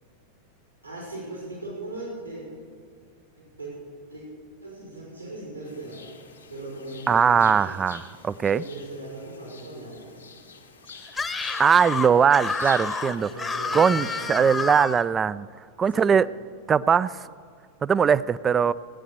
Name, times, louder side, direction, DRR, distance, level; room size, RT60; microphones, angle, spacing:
voice 1, 0.8-2.4 3.4-3.7 4.1-4.2 4.6-6.0 6.5-7.5 8.5-10.3 13.1-14.7 15.9-16.1, right 2 dB, 90° right, -6 dB, 5.2 m, -39 dB
sound 1, 5.6-14.8, left 5 dB, 75° left, 1.5 m, -48 dB
voice 2, 7.1-8.6 11.6-13.3 13.7-15.5 15.8-16.3 16.7-17.1 17.8-18.7, right 7 dB, 20° right, 18 dB, 0.3 m, -20 dB
Screaming, 11.1-15.0, left 4 dB, 15° left, 0.9 m, -29 dB
18.5 x 9.3 x 6.7 m, 2.1 s
figure-of-eight pair, 90°, 0 cm